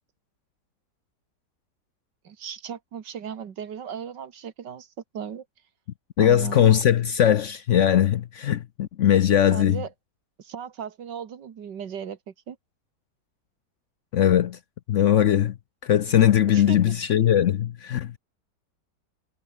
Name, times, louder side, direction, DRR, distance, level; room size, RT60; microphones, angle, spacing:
voice 1, 2.2-4.9 5.1-5.4 6.2-6.6 9.5-9.9 10.4-12.6 16.5-16.8, right 8 dB, 90° right, 2.2 m, -36 dB
voice 2, 6.2-9.8 14.1-14.6 14.9-15.5 15.8-18.2, left 10 dB, 60° left, 0.8 m, -20 dB
omnidirectional pair, 1.8 m